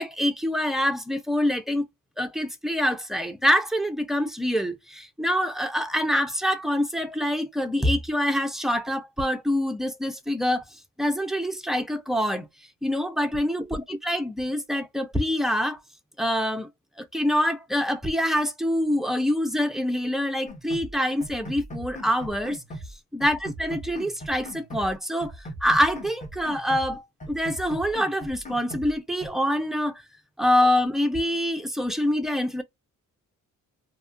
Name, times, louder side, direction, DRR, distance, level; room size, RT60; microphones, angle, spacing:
voice 1, 0.0-1.8 2.2-10.6 11.0-12.5 12.8-15.8 16.2-16.7 17.0-22.6 23.1-30.0 30.4-32.6, equal, ahead, 0.3 m, -25 dB
sound 1, 20.5-20.9 21.2-22.9 23.2-24.9 25.2-26.9 27.2-28.9 29.2-29.3, right 1 dB, 25° left, 0.8 m, -39 dB
2.8 x 2.3 x 2.4 m
cardioid pair, 135°, 33 cm